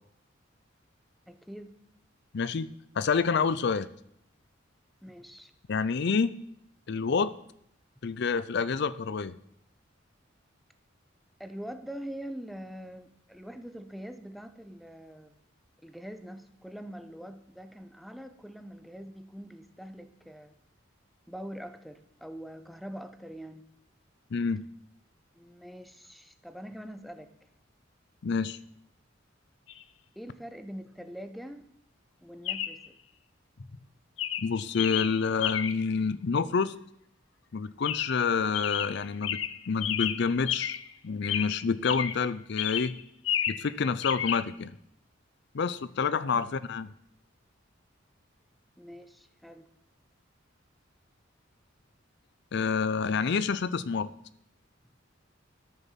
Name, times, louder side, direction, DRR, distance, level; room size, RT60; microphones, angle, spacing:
voice 1, 1.3-1.7 5.0-5.5 11.4-15.3 15.8-20.5 21.3-23.6 25.3-27.3 30.1-31.7 32.2-33.0 46.3-46.5 48.8-49.7, equal, ahead, 10 dB, 0.9 m, -43 dB
voice 2, 2.3-3.9 5.7-6.4 6.9-7.3 8.0-9.4 24.3-24.6 28.2-28.6 34.4-36.8 37.5-40.8 41.0-43.0 43.5-44.7 45.5-46.9 52.5-54.1, left 5 dB, 60° left, 16 dB, 0.5 m, -28 dB
Chirp tweet, 29.7-29.8 32.4-32.9 33.6-33.8 34.2-35.9 37.8-38.3 38.5-40.9 41.2-42.3 42.6-43.7 44.0-44.4, left 10 dB, 90° left, 0.8 m, -32 dB
13.5 x 6.9 x 7.4 m, 0.72 s
head